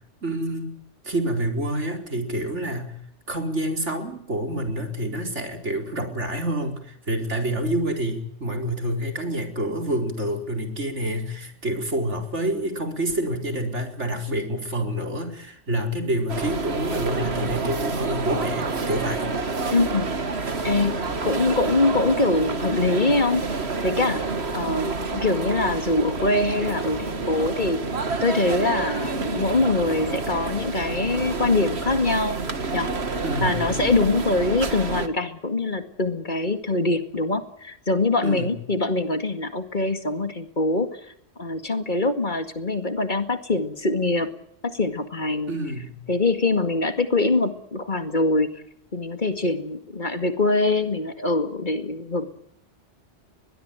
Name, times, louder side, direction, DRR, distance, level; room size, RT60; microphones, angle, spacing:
voice 1, 0.2-0.8 1.0-3.0 3.3-19.3 33.2-33.6 38.2-38.5 45.5-45.9, right 1 dB, 80° right, 5 dB, 4.8 m, -27 dB
sound 1, 16.3-35.1, right 4 dB, 65° right, 2.1 m, -28 dB
voice 2, 19.7-20.2 20.6-23.5 23.8-24.2 24.5-27.8 28.2-32.4 32.7-32.9 33.4-41.0 41.4-44.3 44.6-45.5 46.1-48.6 48.9-52.3, left 2 dB, 40° left, 9 dB, 2.2 m, -23 dB
22.0 x 21.0 x 9.1 m, 0.71 s
omnidirectional pair, 1.2 m